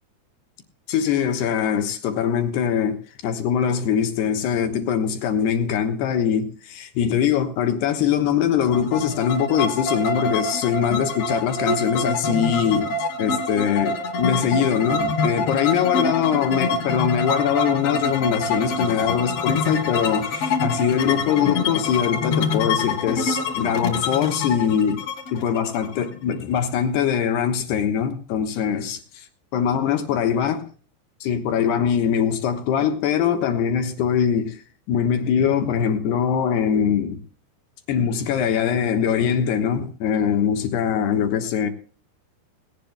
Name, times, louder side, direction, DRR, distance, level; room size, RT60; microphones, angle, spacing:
voice 1, 0.9-25.0 25.3-29.2 29.5-30.6 31.2-34.6 34.9-37.2 37.9-41.7, left 8 dB, 70° left, 3.1 m, -22 dB
sound 1, 8.7-26.4, left 3 dB, 50° left, 2.0 m, -26 dB
19.0 x 17.5 x 2.2 m
omnidirectional pair, 5.2 m